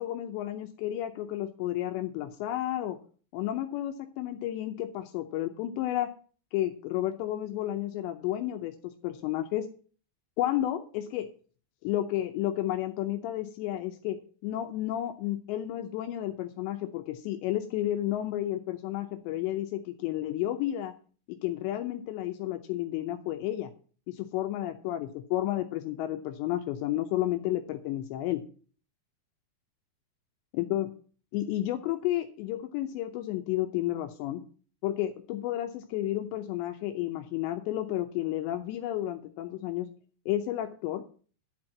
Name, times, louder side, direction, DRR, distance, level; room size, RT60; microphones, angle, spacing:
voice 1, 0.0-3.0 3.3-6.1 6.5-8.7 9.0-9.7 10.4-11.3 11.8-14.2 14.4-20.9 21.4-23.7 24.1-28.4 30.5-30.9 31.3-34.4 34.8-39.9 40.3-41.0, left 13 dB, 85° left, 6 dB, 3.0 m, -31 dB
11.0 x 4.4 x 7.6 m, 0.42 s
omnidirectional pair, 5.0 m